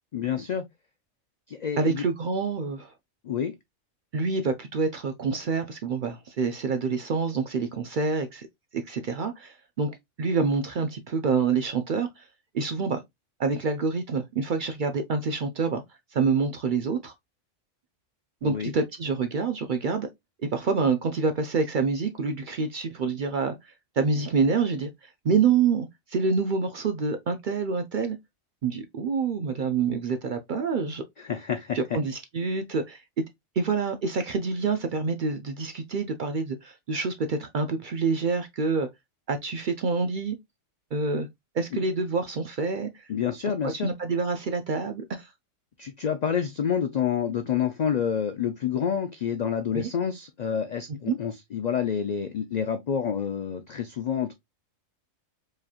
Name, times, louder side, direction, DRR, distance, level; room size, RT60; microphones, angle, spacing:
voice 1, 0.1-0.6 1.5-2.0 3.2-3.5 18.4-18.7 31.2-31.8 43.1-43.9 45.8-54.3, left 8 dB, 85° left, 0.3 m, -28 dB
voice 2, 1.8-2.9 4.1-8.5 8.7-12.3 12.5-13.0 13.4-15.8 16.1-17.1 18.4-20.1 20.5-28.2 28.6-31.0 31.7-33.2 33.6-38.9 39.3-40.4 40.9-41.3 41.5-43.1 43.5-45.3 49.7-49.9 51.1-51.2, right 4 dB, 60° right, 0.5 m, -27 dB
4.8 x 2.9 x 2.3 m
omnidirectional pair, 1.3 m